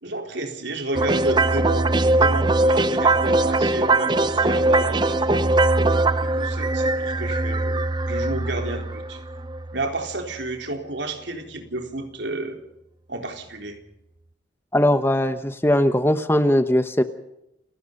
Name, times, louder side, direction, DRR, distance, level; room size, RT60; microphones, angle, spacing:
voice 1, 0.0-5.4 6.2-9.2 9.7-12.6 13.1-13.8, right 2 dB, 65° right, 4 dB, 3.9 m, -31 dB
sound 1, 1.0-10.1, right 2 dB, 25° right, 0.7 m, -21 dB
voice 2, 14.7-17.0, left 1 dB, 10° left, 10 dB, 1.0 m, -19 dB
29.5 x 17.5 x 5.4 m, 0.85 s
head